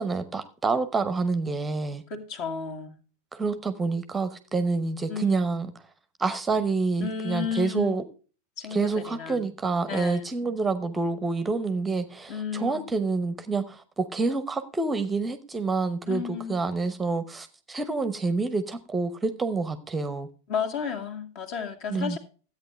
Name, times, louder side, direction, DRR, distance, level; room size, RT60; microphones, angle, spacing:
voice 1, 0.0-2.0 3.3-5.7 6.2-8.0 8.7-20.3 21.9-22.2, right 3 dB, 15° right, 12 dB, 0.9 m, -27 dB
voice 2, 2.1-2.9 5.1-5.4 7.0-8.0 8.6-9.5 9.9-10.3 12.3-12.9 16.1-16.6 20.5-22.2, left 7 dB, 45° left, 5 dB, 2.2 m, -33 dB
13.5 x 8.8 x 3.2 m, 0.37 s
figure-of-eight pair, 90°, 0 cm